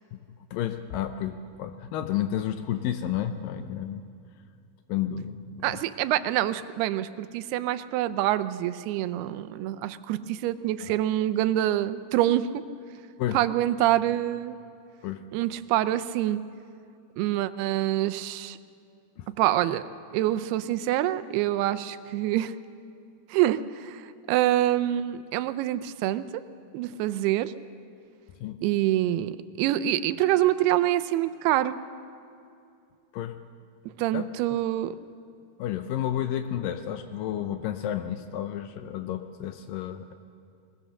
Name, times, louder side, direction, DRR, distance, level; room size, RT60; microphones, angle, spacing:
voice 1, 0.5-4.0 4.9-5.6 10.9-11.0 13.2-13.4 15.0-15.3 19.2-19.3 28.4-28.6 33.1-33.4 34.1-34.6 35.6-40.1, left 11 dB, 80° left, 8 dB, 2.1 m, -31 dB
voice 2, 5.6-12.5 13.3-14.6 15.3-16.4 17.2-18.6 19.4-19.9 20.1-22.6 23.3-26.4 26.7-27.5 28.6-31.8 34.0-35.0, right 13 dB, 90° right, 13 dB, 2.7 m, -26 dB
21.0 x 20.5 x 6.5 m, 2.5 s
omnidirectional pair, 4.5 m